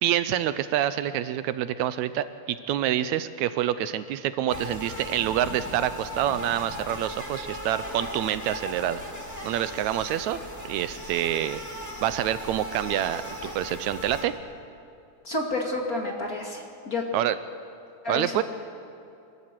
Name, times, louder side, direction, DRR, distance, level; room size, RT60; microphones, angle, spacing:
voice 1, 0.0-9.0 9.4-10.4 10.7-11.6 12.0-13.2 13.5-14.3 17.1-17.4 18.1-18.4, right 11 dB, 80° right, 13 dB, 1.9 m, -27 dB
sound 1, 4.5-14.2, equal, 5° left, 2.1 m, -37 dB
voice 2, 15.2-17.0 18.0-18.4, left 2 dB, 35° left, 1 dB, 2.1 m, -30 dB
24.5 x 14.0 x 7.6 m, 2.7 s
omnidirectional pair, 3.4 m